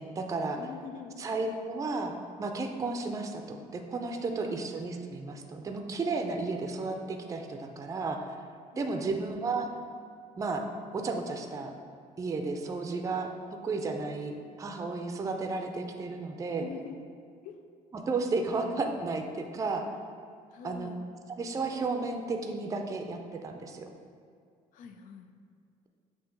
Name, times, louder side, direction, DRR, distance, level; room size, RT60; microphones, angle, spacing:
voice 1, 0.0-0.6 1.2-8.2 8.8-9.7 10.4-10.6 10.9-11.7 12.2-13.3 13.6-16.6 17.9-19.8 20.6-20.9 21.4-23.9, right 3 dB, 20° right, 4 dB, 0.5 m, -33 dB
voice 2, 0.6-1.2 4.4-4.7 8.7-9.3 16.4-17.0 17.4-17.6 20.5-21.0 24.7-25.4, left 7 dB, 65° left, 7 dB, 0.5 m, -45 dB
7.0 x 2.8 x 5.1 m, 2.3 s
cardioid pair, 125°, 14 cm